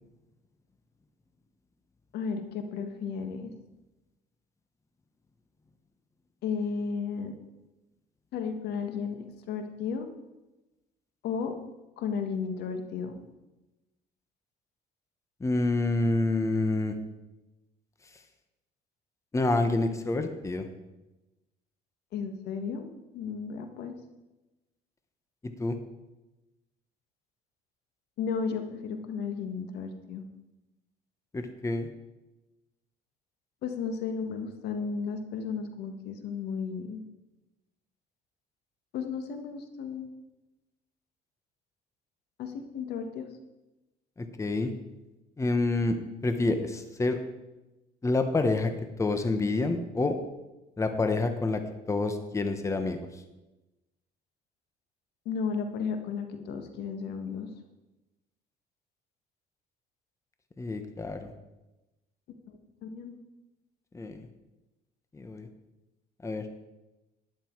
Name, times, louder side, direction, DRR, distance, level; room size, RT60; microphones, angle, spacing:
voice 1, 2.1-3.5 6.4-7.3 8.3-10.1 11.2-11.5 12.0-13.3 22.1-23.9 28.2-30.3 33.6-37.0 38.9-40.1 42.4-43.3 55.2-57.5 62.5-63.2, left 5 dB, 75° left, 7 dB, 1.6 m, -34 dB
voice 2, 15.4-16.9 19.3-20.7 25.6-25.7 31.3-31.9 44.2-44.7 45.4-46.0 46.2-47.2 48.0-48.7 49.0-50.2 50.8-51.6 51.9-53.0 60.6-61.3 63.9-64.3 65.1-65.5 66.2-66.5, left 2 dB, 15° left, 7 dB, 1.1 m, -27 dB
12.0 x 10.5 x 4.6 m, 1.0 s
cardioid pair, 110°, 17 cm